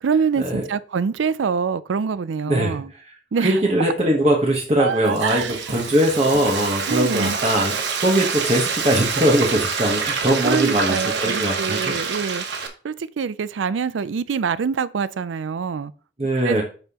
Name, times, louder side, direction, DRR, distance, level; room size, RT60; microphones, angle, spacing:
voice 1, 0.0-2.9 3.3-3.9 4.8-5.5 6.9-7.4 10.4-12.4 12.8-15.9 16.4-16.6, right 6 dB, 90° right, 0.4 m, -25 dB
voice 2, 2.5-3.0 3.4-11.9 16.2-16.6, right 1 dB, 35° right, 1.1 m, -21 dB
Frying (food), 4.8-12.7, right 5 dB, 65° right, 1.1 m, -27 dB
8.9 x 5.6 x 2.9 m
head